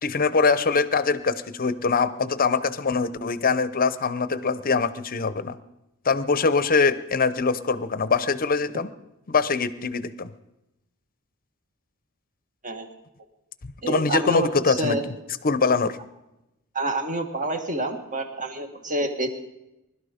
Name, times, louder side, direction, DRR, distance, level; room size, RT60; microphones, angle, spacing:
voice 1, 0.0-5.6 6.0-8.9 9.3-10.3 13.9-15.1 15.4-16.0, left 4 dB, 40° left, 15 dB, 0.7 m, -23 dB
voice 2, 13.8-15.0 16.7-19.3, right 2 dB, 35° right, 6 dB, 1.7 m, -28 dB
21.0 x 12.0 x 5.1 m, 0.92 s
head